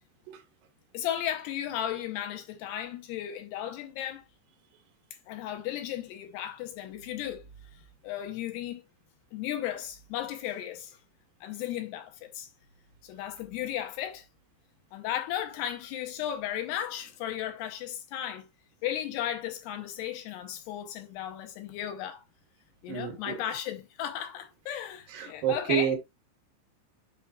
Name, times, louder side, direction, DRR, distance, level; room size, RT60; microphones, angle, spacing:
voice 1, 0.9-4.2 5.3-8.8 9.3-11.0 11.4-12.5 13.0-14.3 14.9-18.5 18.8-22.2 22.8-26.0, left 11 dB, 80° left, 2.8 m, -35 dB
voice 2, 25.2-26.0, right 10 dB, 65° right, 2.6 m, -28 dB
7.2 x 5.6 x 2.4 m
omnidirectional pair, 5.2 m